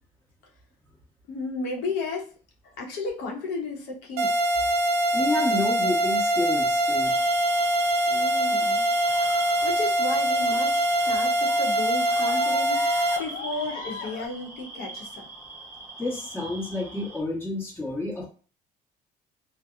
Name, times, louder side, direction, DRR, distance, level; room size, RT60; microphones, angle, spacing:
voice 1, 1.3-2.3 2.8-4.3 8.1-8.8 9.2-15.3, left 3 dB, 90° left, -1 dB, 0.8 m, -34 dB
sound 1, 4.2-13.2, right 1 dB, 65° right, 0.6 m, -23 dB
voice 2, 5.1-7.2 16.0-18.2, left 2 dB, 15° left, -3 dB, 1.0 m, -29 dB
sound 2, 7.0-17.2, right 2 dB, 15° right, 0.8 m, -42 dB
sound 3, 9.0-14.3, left 4 dB, 60° left, 0.5 m, -40 dB
2.6 x 2.0 x 2.4 m, 0.38 s
cardioid pair, 110°, 17 cm